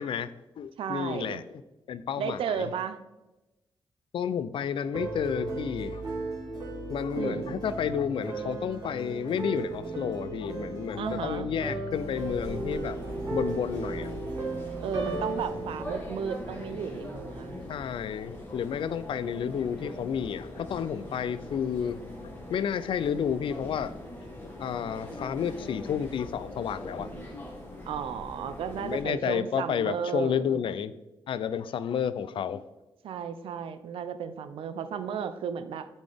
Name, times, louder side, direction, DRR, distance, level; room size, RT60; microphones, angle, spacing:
voice 1, 0.0-1.4 1.9-2.7 4.1-6.0 6.9-13.0 13.3-14.1 17.7-22.0 22.5-23.9 24.6-27.1 28.8-30.9 31.3-32.6, left 8 dB, 65° left, 0.4 m, -31 dB
voice 2, 0.8-1.4 2.2-3.0 7.1-7.6 11.0-11.5 14.8-17.7 27.8-30.6 33.0-35.9, right 7 dB, 80° right, 0.5 m, -34 dB
sound 1, 4.9-17.1, right 2 dB, 45° right, 2.0 m, -36 dB
sound 2, 11.9-29.0, left 1 dB, 20° left, 1.8 m, -42 dB
8.2 x 4.1 x 3.4 m
supercardioid pair, 55°, 9 cm